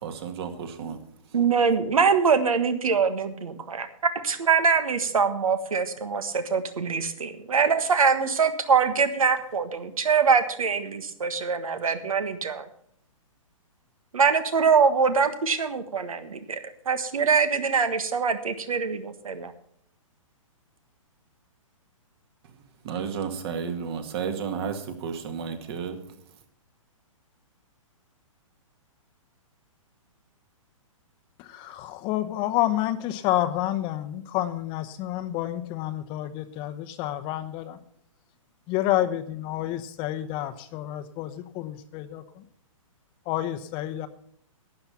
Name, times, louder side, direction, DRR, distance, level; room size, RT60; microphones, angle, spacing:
voice 1, 0.0-1.0 22.8-26.0, right 6 dB, 45° right, 6 dB, 2.0 m, -32 dB
voice 2, 1.3-3.9 4.2-12.7 14.1-19.5, right 5 dB, 80° right, 10 dB, 1.5 m, -23 dB
voice 3, 31.4-37.8 38.7-42.4 43.3-44.1, left 13 dB, 30° left, 11 dB, 0.8 m, -29 dB
12.0 x 8.8 x 5.7 m, 0.66 s
hypercardioid pair, 135°, 18 cm